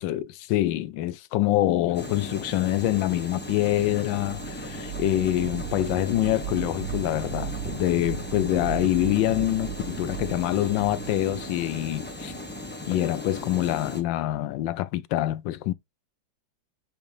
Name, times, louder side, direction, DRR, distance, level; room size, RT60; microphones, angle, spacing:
voice 1, 0.0-12.3 12.9-15.7, left 14 dB, 80° left, 1.3 m, -25 dB
sound 1, 1.9-14.0, left 1 dB, 10° left, 0.5 m, -37 dB
sound 2, 3.1-12.8, right 12 dB, 60° right, 1.1 m, -38 dB
8.2 x 3.4 x 3.7 m
omnidirectional pair, 2.1 m